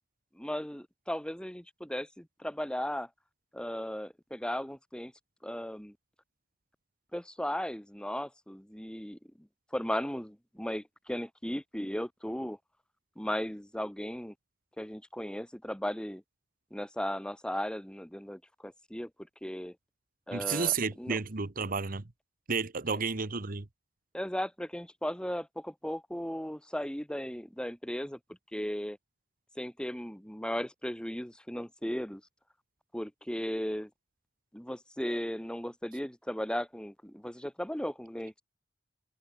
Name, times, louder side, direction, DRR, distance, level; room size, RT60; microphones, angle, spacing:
voice 1, 0.3-3.1 3.5-5.1 5.4-5.9 7.1-9.5 9.7-12.6 13.2-14.3 14.8-16.2 16.7-19.1 19.4-19.7 20.3-21.2 24.1-28.2 28.5-29.0 29.6-32.2 32.9-33.9 34.5-38.3, equal, 5° left, 1.6 m, -36 dB
voice 2, 20.3-22.0 22.5-23.7, right 5 dB, 50° right, 1.1 m, -31 dB
head